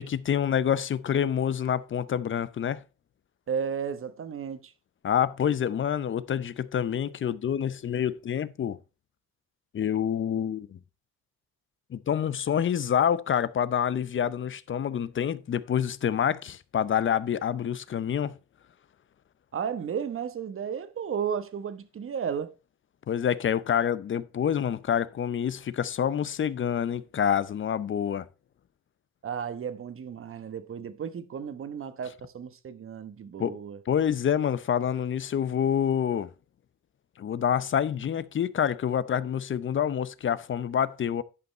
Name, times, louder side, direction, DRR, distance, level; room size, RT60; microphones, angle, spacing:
voice 1, 0.0-2.8 5.0-8.8 9.7-10.8 11.9-18.4 23.1-28.3 33.4-33.6 33.9-36.3 37.2-41.2, left 9 dB, 40° left, 0.6 m, -27 dB
voice 2, 3.5-4.7 19.5-22.5 29.2-33.8, right 7 dB, 45° right, 1.2 m, -33 dB
11.0 x 5.3 x 4.2 m
cardioid pair, 90°, 30 cm